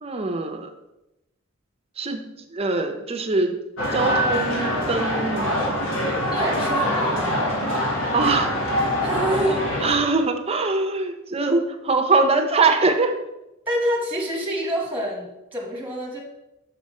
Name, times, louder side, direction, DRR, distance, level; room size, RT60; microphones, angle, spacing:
voice 1, 0.0-0.7 2.0-3.6 3.9-5.5 8.1-8.6 9.8-13.2, right 3 dB, 30° right, 6 dB, 0.7 m, -23 dB
sound 1, 3.8-9.9, equal, 85° left, 1.5 m, -24 dB
voice 2, 6.3-7.4 9.0-9.6 13.7-16.2, right 1 dB, 10° right, -2 dB, 1.5 m, -26 dB
6.6 x 5.0 x 4.3 m, 0.93 s
head